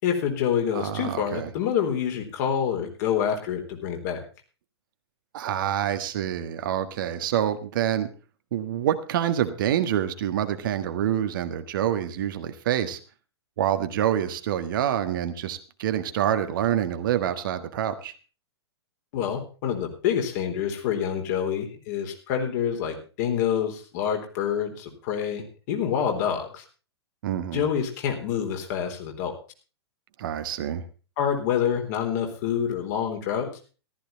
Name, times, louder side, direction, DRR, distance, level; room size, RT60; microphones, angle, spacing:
voice 1, 0.0-4.2 19.1-26.6 27.5-29.3 31.2-33.5, left 8 dB, 40° left, 3 dB, 3.9 m, -27 dB
voice 2, 0.7-1.5 5.3-8.1 8.5-13.0 13.6-18.1 27.2-27.6 30.2-30.8, right 10 dB, 50° right, 9 dB, 1.5 m, -27 dB
14.5 x 13.5 x 4.0 m, 0.35 s
figure-of-eight pair, 105°, 14 cm